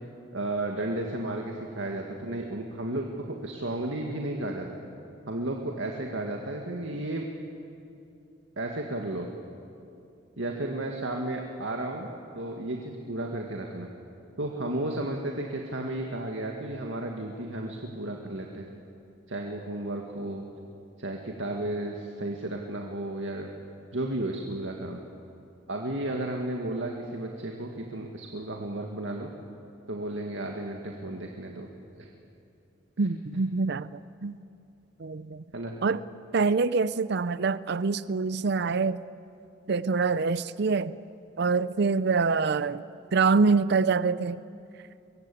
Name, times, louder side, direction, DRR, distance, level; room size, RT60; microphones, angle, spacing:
voice 1, 0.3-4.8 5.3-7.3 8.6-9.3 10.4-12.1 12.3-13.9 14.4-18.7 19.3-20.5 21.0-23.5 23.9-25.0 25.7-29.3 29.9-31.7 31.9-32.1 33.0-33.1 33.3-33.4 35.5-35.8, right 1 dB, 85° right, 1 dB, 2.0 m, -33 dB
voice 2, 33.0-34.4 35.0-35.4 35.8-36.0 36.3-39.0 39.7-40.9 41.4-42.8 43.1-44.4, right 4 dB, 60° right, 16 dB, 0.5 m, -25 dB
24.0 x 22.5 x 8.5 m, 2.7 s
head